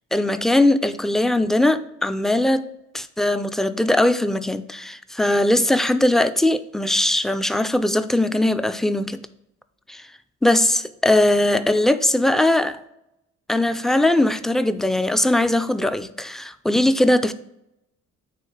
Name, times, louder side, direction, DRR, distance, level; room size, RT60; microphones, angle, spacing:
voice 1, 0.1-2.6 2.9-9.3 9.9-10.0 10.4-12.8 13.5-17.3, left 1 dB, ahead, 0.4 m, -20 dB
8.6 x 3.2 x 4.9 m
cardioid pair, 90°, 30 cm